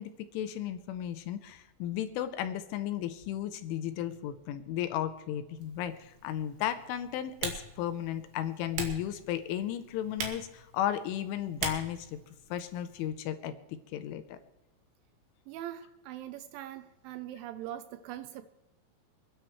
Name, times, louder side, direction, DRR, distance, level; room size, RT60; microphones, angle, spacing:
voice 1, 0.0-12.2 12.5-13.6 13.9-14.4, left 11 dB, 85° left, 10 dB, 3.1 m, -34 dB
Typing, 5.6-13.1, right 5 dB, 60° right, 3.8 m, -42 dB
voice 2, 15.5-18.4, right 12 dB, 80° right, 11 dB, 2.8 m, -42 dB
28.0 x 10.0 x 3.1 m, 1.0 s
omnidirectional pair, 5.9 m